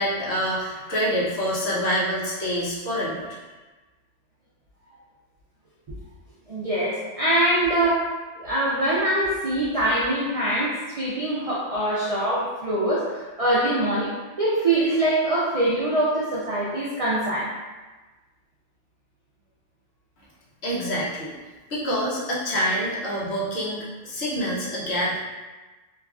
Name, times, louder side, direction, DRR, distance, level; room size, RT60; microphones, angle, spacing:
voice 1, 0.0-3.3 20.6-21.3 21.7-25.2, equal, 60° left, -7 dB, 0.9 m, -26 dB
voice 2, 6.5-8.1 8.4-14.1 14.4-17.5, right 1 dB, 70° right, -7 dB, 0.3 m, -23 dB
3.0 x 2.3 x 2.3 m, 1.2 s
omnidirectional pair, 1.3 m